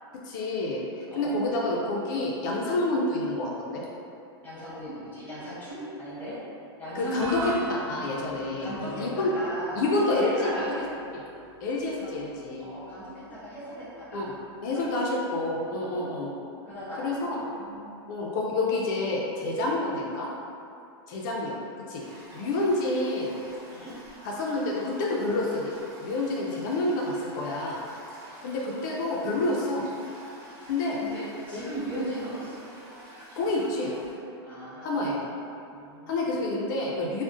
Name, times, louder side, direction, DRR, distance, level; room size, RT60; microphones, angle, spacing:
voice 1, 0.1-3.8 6.9-7.4 7.7-9.3 9.8-10.4 11.1-11.2 11.6-12.6 14.1-14.2 14.6-16.3 17.0-17.4 18.1-20.3 21.1-21.6 21.9-22.0 22.3-23.4 24.2-25.7 26.0-27.8 28.4-29.8 30.7-31.0 33.4-33.9 34.8-35.2 36.1-37.2, left 2 dB, 45° left, -3 dB, 0.4 m, -28 dB
voice 2, 1.1-1.5 4.4-6.4 6.8-7.4 8.6-10.7 12.0-12.1 12.6-14.3 14.7-15.2 15.8-16.4 16.6-18.1 23.7-24.0 30.6-30.7 31.0-32.7 34.4-35.3 35.7-36.5, equal, 10° left, -11 dB, 0.8 m, -38 dB
sound 1, 7.1-15.6, right 2 dB, 80° right, 0.5 m, -43 dB
Toilet flush, 22.0-34.2, right 1 dB, 50° right, 1.1 m, -48 dB
2.5 x 2.0 x 3.6 m, 2.6 s
supercardioid pair, 165°, 14 cm